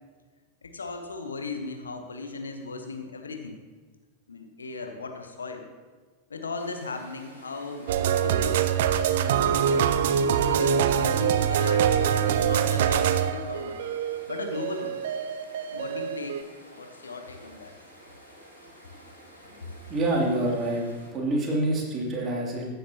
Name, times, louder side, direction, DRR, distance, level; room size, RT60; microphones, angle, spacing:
voice 1, 0.6-3.6 4.3-5.7 6.3-8.7 9.1-9.9 10.2-13.8 14.3-15.0 15.7-16.4 16.8-17.7 19.6-19.7, left 3 dB, 75° left, 6 dB, 1.0 m, -37 dB
sound 1, 6.6-21.1, equal, 90° right, 3.6 m, -51 dB
sound 2, 7.9-16.4, right 8 dB, 55° right, 0.5 m, -24 dB
voice 2, 19.9-20.9 21.1-22.7, right 1 dB, 25° right, -2 dB, 2.8 m, -26 dB
14.5 x 9.9 x 2.9 m, 1.4 s
figure-of-eight pair, 90°, 0 cm